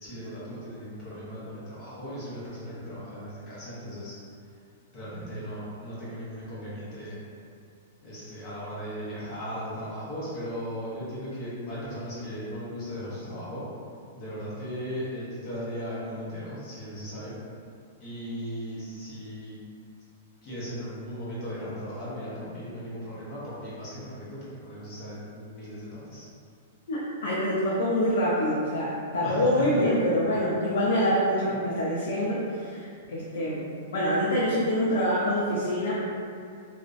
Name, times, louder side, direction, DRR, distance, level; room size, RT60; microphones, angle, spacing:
voice 1, 0.0-4.1 4.9-7.2 8.0-13.6 14.1-17.3 18.0-19.5 20.4-26.3 29.2-29.8, equal, 25° left, -10 dB, 0.7 m, -37 dB
voice 2, 26.9-33.6 33.9-35.9, equal, 85° left, -6 dB, 0.4 m, -25 dB
2.4 x 2.1 x 2.4 m, 2.3 s
supercardioid pair, 180°, 0 cm